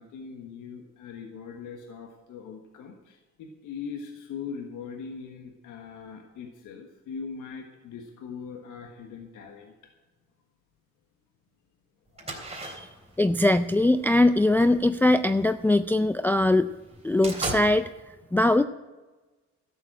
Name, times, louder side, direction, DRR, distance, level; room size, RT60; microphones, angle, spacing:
voice 1, 0.0-9.7 12.1-12.4, left 6 dB, 90° left, 3 dB, 1.5 m, -41 dB
sound 1, 12.1-16.0 16.4-16.5 16.8-17.7, right 2 dB, 20° right, 3.5 m, -38 dB
voice 2, 13.2-16.7 17.0-17.9 18.3-18.6, left 2 dB, 5° left, 10 dB, 0.4 m, -21 dB
13.0 x 7.1 x 8.8 m, 1.2 s
cardioid pair, 90°, 30 cm